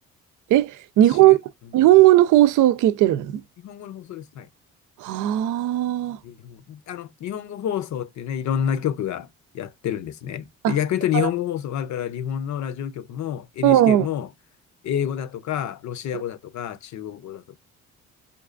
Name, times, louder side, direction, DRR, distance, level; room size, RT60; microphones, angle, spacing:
voice 1, 0.5-1.4 1.7-3.4 5.0-6.2 10.6-10.7 11.1-11.3 13.6-14.1, right 14 dB, 85° right, 0.5 m, -17 dB
voice 2, 3.6-4.5 6.2-9.3 9.5-14.3 14.8-17.6, left 9 dB, 70° left, 0.7 m, -28 dB
5.2 x 2.4 x 2.4 m
cardioid pair, 90°, 30 cm